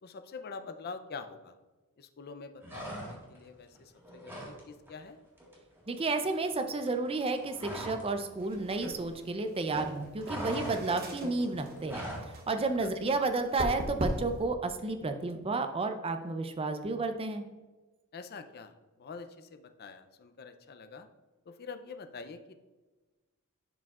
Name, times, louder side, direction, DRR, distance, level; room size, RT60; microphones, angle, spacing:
voice 1, 0.0-1.6 2.0-5.2 12.8-12.9 18.1-21.1 21.5-22.5, left 4 dB, 45° left, 8 dB, 0.5 m, -45 dB
sound 1, 2.6-3.4 3.8-4.6 4.9-5.1 5.4-8.1 8.4-9.5 9.7-12.3, equal, 10° right, 1.6 m, -41 dB
voice 2, 5.9-12.1 12.3-17.4, right 3 dB, 25° right, 7 dB, 0.5 m, -32 dB
sound 2, 8.3-14.5, right 1 dB, 40° right, 1.0 m, -39 dB
11.0 x 4.9 x 2.4 m, 1.2 s
head